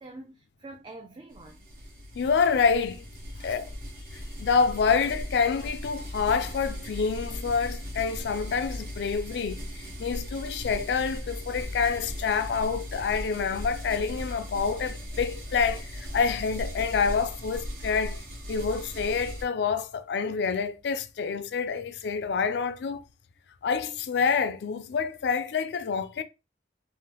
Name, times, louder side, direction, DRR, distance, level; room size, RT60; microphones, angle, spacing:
voice 1, 0.0-1.7 3.3-3.7, right 2 dB, 30° right, 0.3 m, -46 dB
sound 1, 1.3-19.4, equal, 55° right, 1.1 m, -38 dB
voice 2, 2.2-3.0 3.4-3.7 4.4-18.2 18.5-23.0 23.6-26.2, left 5 dB, 80° left, 0.3 m, -27 dB
3.5 x 2.0 x 2.9 m
head